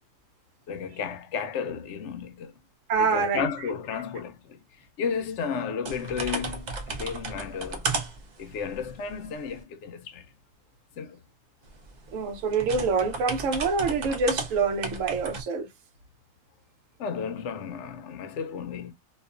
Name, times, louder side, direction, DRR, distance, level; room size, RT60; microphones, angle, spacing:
voice 1, 0.7-2.6 3.0-4.6 5.0-7.9 8.4-10.3 11.0-11.2 17.0-18.9, left 6 dB, 70° left, 0.8 m, -33 dB
voice 2, 2.9-3.5 12.1-15.7, right 4 dB, 80° right, 1.0 m, -26 dB
sound 1, 5.9-9.6 11.7-15.4, right 3 dB, 50° right, 0.5 m, -34 dB
2.4 x 2.3 x 2.3 m
omnidirectional pair, 1.3 m